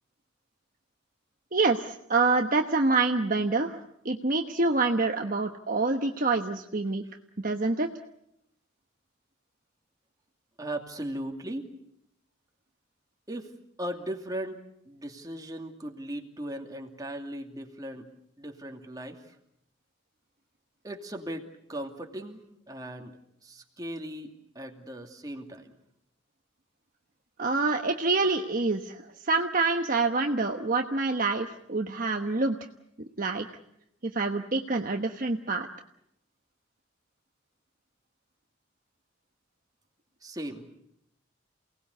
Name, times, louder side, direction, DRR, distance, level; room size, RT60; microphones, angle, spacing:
voice 1, 1.5-3.8 4.0-7.0 7.4-7.9 27.4-32.6 33.0-33.5 34.0-35.7, right 3 dB, 45° right, 4 dB, 1.2 m, -26 dB
voice 2, 10.6-11.7 13.3-13.5 13.8-18.1 18.4-19.4 20.8-23.2 23.4-25.8 40.2-40.7, right 1 dB, 20° right, 3 dB, 2.6 m, -38 dB
28.5 x 19.0 x 8.3 m, 0.77 s
head